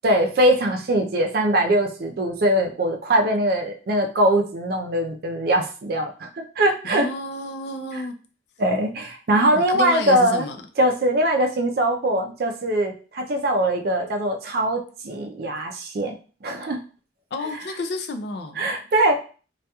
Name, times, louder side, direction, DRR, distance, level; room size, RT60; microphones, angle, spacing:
voice 1, 0.0-7.1 8.6-10.4 10.8-16.2 16.4-16.8 18.6-19.2, right 1 dB, 55° right, 4 dB, 0.4 m, -22 dB
voice 2, 6.8-8.1 9.5-10.6 17.3-18.7, left 3 dB, 65° left, 6 dB, 0.4 m, -30 dB
2.8 x 2.3 x 2.2 m, 0.38 s
head